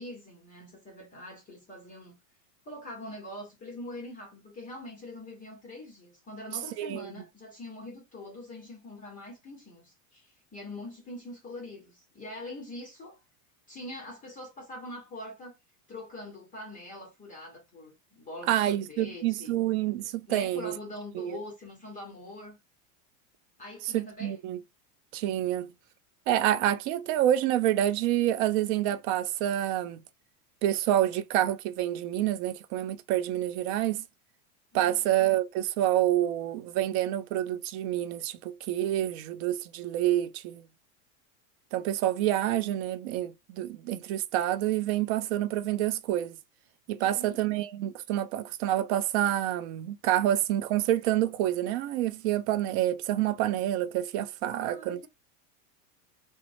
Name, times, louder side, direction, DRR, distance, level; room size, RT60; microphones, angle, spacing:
voice 1, 0.0-2.2 2.6-13.2 13.7-15.6 15.9-19.6 20.3-22.6 23.6-24.4 34.7-35.1 47.0-47.4 54.5-55.1, left 1 dB, 20° left, 0.9 m, -43 dB
voice 2, 6.8-7.1 18.5-20.7 21.2-21.4 23.9-24.6 25.1-25.7 26.3-30.0 30.6-34.0 34.7-40.6 41.7-46.4 46.9-55.0, right 12 dB, 50° right, 0.5 m, -28 dB
3.1 x 2.1 x 2.4 m
supercardioid pair, 140°, 44 cm